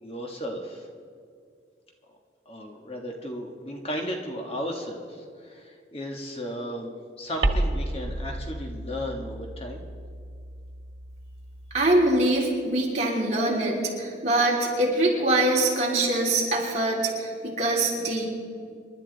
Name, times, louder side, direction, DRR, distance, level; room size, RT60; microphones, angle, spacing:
voice 1, 0.0-0.9 2.5-6.9 7.2-9.8, equal, 30° left, 2 dB, 1.4 m, -35 dB
sound 1, 7.4-12.3, right 1 dB, 90° right, 1.4 m, -32 dB
voice 2, 11.7-18.2, right 2 dB, 40° right, -3 dB, 3.3 m, -23 dB
27.5 x 11.5 x 4.0 m, 2.2 s
head